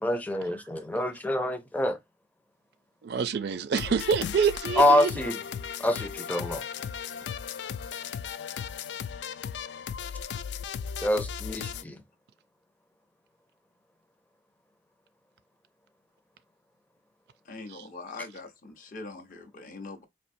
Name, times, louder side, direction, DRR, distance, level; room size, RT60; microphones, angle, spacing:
voice 1, 0.0-2.0 4.8-5.4 5.8-6.6 11.0-12.0, left 1 dB, 10° left, 0.5 m, -26 dB
voice 2, 3.0-5.1 17.7-17.8, right 6 dB, 60° right, 0.4 m, -27 dB
sound 1, 3.7-11.8, left 7 dB, 70° left, 0.3 m, -36 dB
voice 3, 17.5-20.0, left 3 dB, 45° left, 0.7 m, -42 dB
4.3 x 2.6 x 2.6 m
head